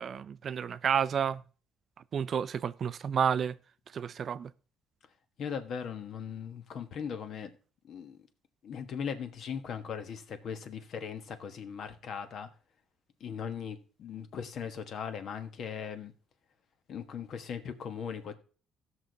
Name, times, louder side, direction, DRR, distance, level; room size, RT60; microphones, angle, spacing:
voice 1, 0.0-1.4 2.1-3.6 3.9-4.5, right 7 dB, 40° right, 0.4 m, -30 dB
voice 2, 5.4-7.5 7.8-8.2 8.6-12.5 13.2-16.1 16.9-18.4, left 7 dB, 50° left, 1.2 m, -39 dB
16.0 x 6.4 x 3.9 m
cardioid pair, 150°, 0 cm